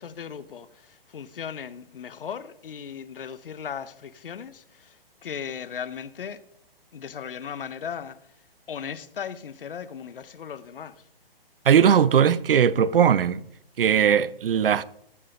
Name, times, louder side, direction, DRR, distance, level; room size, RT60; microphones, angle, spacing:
voice 1, 0.0-6.4 6.9-8.2 8.7-10.9, left 7 dB, 65° left, 0.9 m, -37 dB
voice 2, 11.7-13.4 13.8-14.8, right 8 dB, 65° right, 0.7 m, -19 dB
14.0 x 7.5 x 3.8 m
figure-of-eight pair, 130°, 30 cm